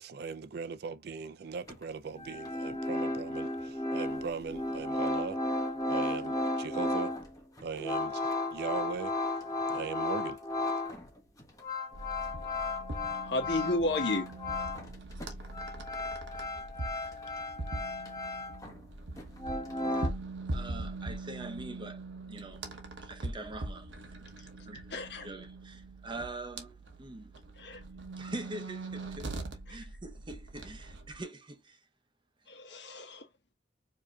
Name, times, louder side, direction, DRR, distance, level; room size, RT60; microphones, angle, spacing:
voice 1, 0.0-5.4 5.9-7.1 7.6-9.1 9.7-10.4, right 5 dB, 60° right, 0.4 m, -39 dB
sound 1, 1.7-1.8 2.2-11.1 11.4-15.0 15.2-18.8 19.2-20.1, left 2 dB, 20° left, 1.0 m, -34 dB
sound 2, 11.9-31.2, right 2 dB, 85° right, 1.0 m, -42 dB
voice 2, 13.2-14.3 24.9-25.3 27.6-27.8 29.7-29.8 32.5-33.2, left 2 dB, 70° left, 1.4 m, -32 dB
voice 3, 20.5-22.0 22.3-22.6 23.0-23.9 24.4-27.3 28.2-29.4 29.7-31.8, right 2 dB, 25° right, 0.7 m, -44 dB
4.8 x 2.8 x 2.3 m
head